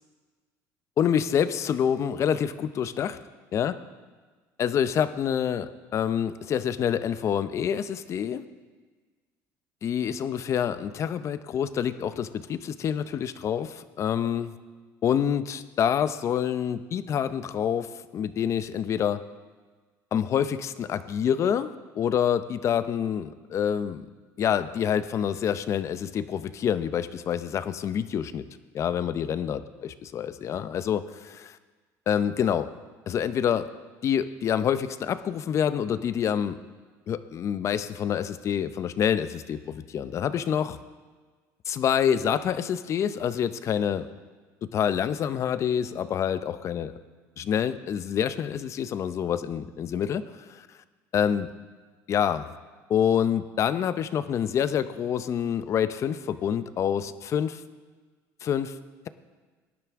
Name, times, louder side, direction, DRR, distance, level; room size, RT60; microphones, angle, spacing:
voice 1, 1.0-3.2 3.5-3.8 4.6-8.4 9.8-14.5 15.0-19.2 20.1-24.1 24.4-28.5 28.7-31.6 32.1-32.7 33.1-33.7 34.0-36.6 37.1-40.8 41.7-44.1 44.7-46.9 47.4-50.7 51.1-51.5 52.1-52.5 52.9-57.6 58.4-58.7, left 8 dB, 40° left, 13 dB, 0.6 m, -27 dB
19.5 x 10.5 x 3.6 m, 1.4 s
cardioid pair, 125°, 7 cm